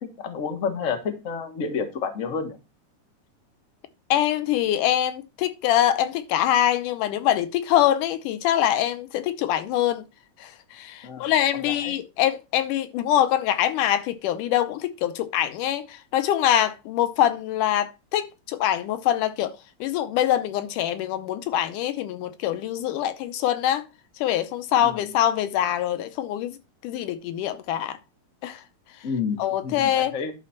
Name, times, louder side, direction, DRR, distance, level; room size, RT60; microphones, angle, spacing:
voice 1, 0.0-2.6 11.0-11.3 11.6-11.9 24.8-25.0 29.0-30.3, left 5 dB, 35° left, 1.2 m, -30 dB
voice 2, 4.1-10.0 10.4-23.9 24.2-26.6 26.8-28.0 28.4-28.6 29.4-30.2, left 11 dB, 80° left, 2.3 m, -24 dB
11.0 x 4.1 x 5.8 m
omnidirectional pair, 3.7 m